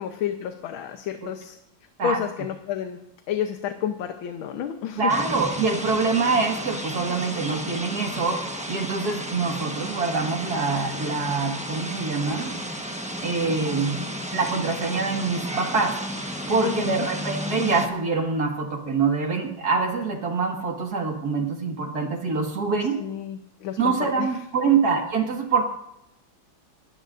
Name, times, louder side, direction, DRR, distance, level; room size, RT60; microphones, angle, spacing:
voice 1, 0.0-1.6 2.0-3.0 3.3-5.1 16.6-17.1 23.0-24.3 24.7-24.8, left 9 dB, 90° left, 6 dB, 1.7 m, -30 dB
voice 2, 5.0-12.6 13.2-14.0 14.3-23.0 23.8-25.6, right 4 dB, 55° right, 2 dB, 2.3 m, -25 dB
sound 1, 5.1-17.9, equal, 5° right, 0.6 m, -33 dB
29.5 x 13.0 x 2.6 m, 0.79 s
omnidirectional pair, 2.1 m